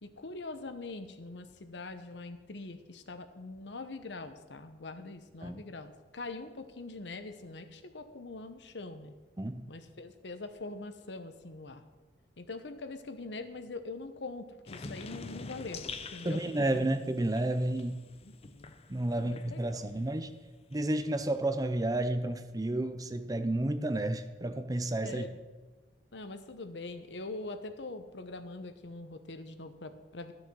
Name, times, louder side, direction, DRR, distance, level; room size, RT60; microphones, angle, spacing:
voice 1, 0.0-9.1 9.7-11.8 12.4-16.7 18.2-18.7 19.2-19.9 25.0-25.4 26.1-30.3, left 3 dB, 65° left, 9 dB, 0.9 m, -43 dB
sound 1, 14.7-20.0 20.3-22.0, left 4 dB, 35° left, 0.6 m, -47 dB
voice 2, 16.2-18.0 18.9-20.4 20.7-25.3, right 1 dB, 20° right, 10 dB, 0.6 m, -31 dB
13.0 x 6.4 x 6.2 m, 1.3 s
head